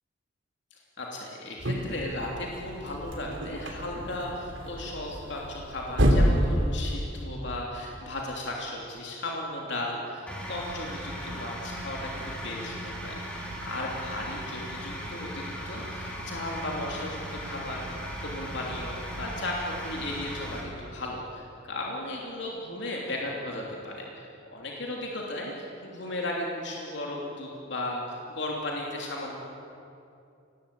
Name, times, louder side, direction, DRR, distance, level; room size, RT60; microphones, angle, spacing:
voice 1, 1.0-24.3 24.5-29.4, left 1 dB, 60° left, -1 dB, 3.1 m, -36 dB
sound 1, 1.6-7.4, equal, 70° right, 3.5 m, -28 dB
sound 2, 10.3-20.6, equal, 5° left, 3.8 m, -37 dB
25.5 x 19.0 x 8.5 m, 2.6 s
head